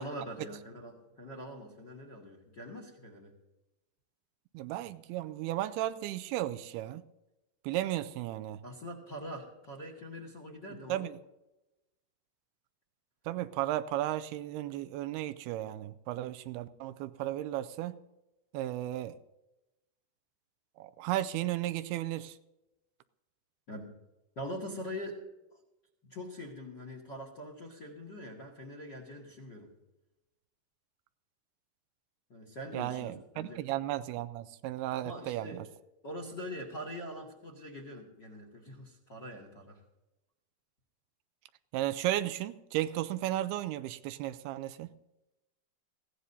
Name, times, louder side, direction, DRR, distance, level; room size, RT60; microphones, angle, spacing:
voice 1, 0.0-3.3 8.6-11.1 23.7-24.0 24.4-25.2 26.0-29.7 32.3-33.6 35.0-35.6 36.0-39.8, equal, 35° left, 1 dB, 1.8 m, -43 dB
voice 2, 4.5-7.0 7.6-8.6 10.9-11.1 13.3-18.0 18.5-19.2 20.8-22.3 32.7-35.7 41.7-44.9, right 14 dB, 80° right, 12 dB, 2.4 m, -34 dB
21.0 x 16.5 x 2.7 m, 0.97 s
omnidirectional pair, 4.8 m